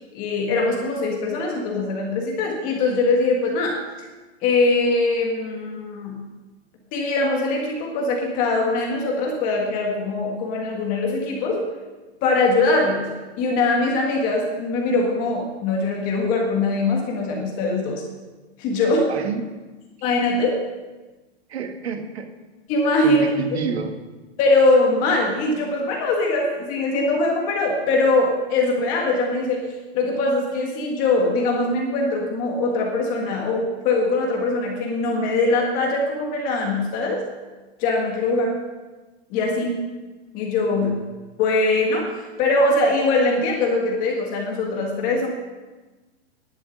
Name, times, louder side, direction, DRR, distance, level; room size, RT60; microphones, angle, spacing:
voice 1, 0.1-3.8 4.4-6.2 6.9-11.6 12.2-18.0 18.6-19.1 20.0-20.6 22.7-23.2 24.4-29.6 29.9-37.2 37.8-38.5 39.3-39.8 40.3-41.0 41.4-45.3, left 2 dB, 25° left, 0 dB, 1.7 m, -22 dB
voice 2, 19.1-19.5 21.5-22.3 23.0-24.0 40.7-41.0, right 5 dB, 75° right, 6 dB, 1.7 m, -29 dB
11.0 x 9.6 x 6.4 m, 1.2 s
hypercardioid pair, 160°, 32 cm